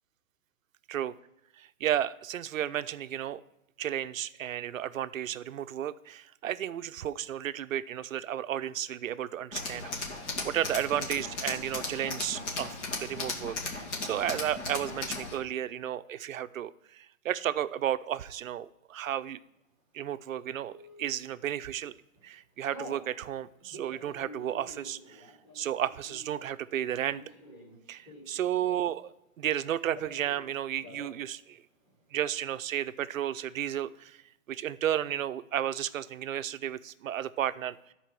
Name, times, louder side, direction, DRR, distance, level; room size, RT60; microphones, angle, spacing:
voice 1, 1.6-3.4 3.8-19.4 19.9-21.9 22.2-25.2 25.5-27.2 27.9-29.1 29.4-31.6 32.1-34.2 34.5-37.8, right 11 dB, 65° right, 14 dB, 0.6 m, -33 dB
Tools, 9.5-15.4, left 3 dB, 50° left, 2.3 m, -36 dB
Telephone, 20.5-21.0 21.6-21.9 22.1-23.0 23.6-29.1 29.3-30.4 30.7-31.2 31.5-31.6 31.8-32.4, equal, 15° left, 2.7 m, -49 dB
13.5 x 4.6 x 5.9 m, 0.91 s
hypercardioid pair, 170°, 42 cm